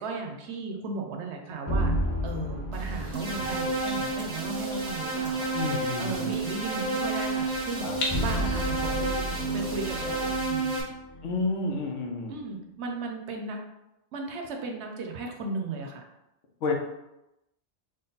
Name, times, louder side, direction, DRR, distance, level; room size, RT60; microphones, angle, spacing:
voice 1, 0.0-1.9 2.2-5.5 6.0-10.7 12.3-13.6 14.1-16.0, right 3 dB, 70° right, 2 dB, 0.8 m, -36 dB
sound 1, 1.7-3.9 8.1-11.3, equal, 20° left, 0.5 m, -31 dB
sound 2, 2.7-10.3, left 2 dB, 60° left, 1.0 m, -40 dB
sound 3, 3.1-10.8, right 3 dB, 40° right, 0.7 m, -31 dB
voice 2, 5.5-6.3 7.8-8.0 11.2-12.4 16.6-16.7, left 3 dB, 80° left, 2 dB, 1.0 m, -30 dB
3.8 x 2.2 x 3.9 m, 0.90 s
omnidirectional pair, 1.3 m